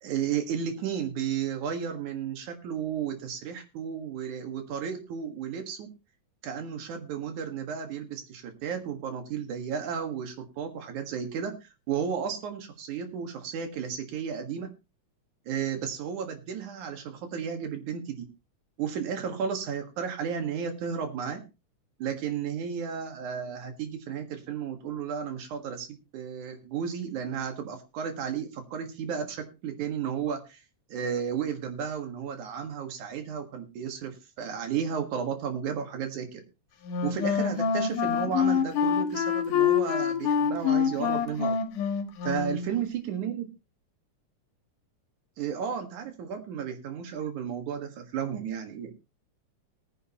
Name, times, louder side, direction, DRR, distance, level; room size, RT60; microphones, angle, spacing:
voice 1, 0.0-5.9 6.4-14.7 15.5-18.2 18.8-21.4 22.0-30.6 30.9-36.4 37.0-41.6 42.2-43.5 45.4-48.9, right 7 dB, 70° right, 6 dB, 3.1 m, -33 dB
Wind instrument woodwind instrument, 36.8-42.7, left 7 dB, 85° left, 3.0 m, -26 dB
18.0 x 9.9 x 2.9 m, 0.27 s
omnidirectional pair, 3.6 m